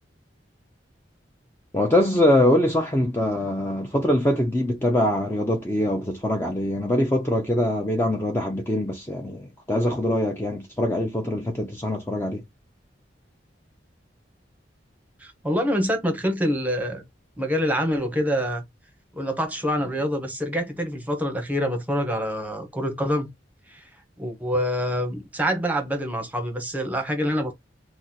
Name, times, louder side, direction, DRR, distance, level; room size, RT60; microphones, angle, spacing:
voice 1, 1.7-12.4, left 1 dB, 15° left, 0.5 m, -23 dB
voice 2, 15.2-17.0 17.4-18.6 19.1-23.3 23.7-23.8 24.2-27.5, equal, 10° right, 0.8 m, -26 dB
3.0 x 2.1 x 3.8 m
head